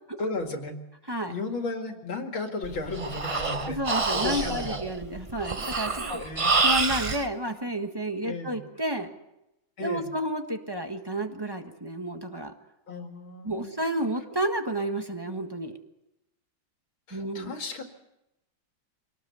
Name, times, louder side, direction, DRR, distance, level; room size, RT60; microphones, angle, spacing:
voice 1, 0.2-0.8 1.3-3.8 4.1-4.8 6.0-6.5 8.2-8.6 9.8-10.1 12.9-13.7 17.1-17.8, left 3 dB, 80° left, 4 dB, 3.0 m, -34 dB
Breathing, 2.6-7.2, right 3 dB, 35° right, 0.5 m, -27 dB
voice 2, 3.6-6.2 6.6-9.1 9.8-12.5 13.4-15.8 17.1-17.5, right 1 dB, 15° right, 5 dB, 1.3 m, -31 dB
25.0 x 18.5 x 7.0 m, 0.89 s
omnidirectional pair, 2.1 m